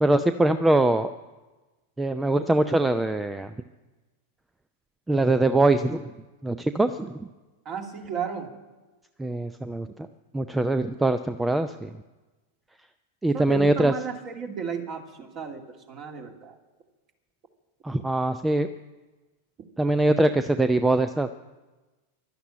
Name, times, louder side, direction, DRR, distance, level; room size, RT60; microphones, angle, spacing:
voice 1, 0.0-1.1 2.0-3.5 5.1-6.0 6.4-7.2 9.2-10.1 10.3-11.9 13.2-13.9 17.8-18.7 19.8-21.3, right 2 dB, 10° right, 11 dB, 0.6 m, -23 dB
voice 2, 7.6-8.5 13.3-16.6, right 6 dB, 35° right, 4 dB, 2.5 m, -34 dB
12.5 x 12.0 x 8.8 m, 1.2 s
figure-of-eight pair, 90°, 0 cm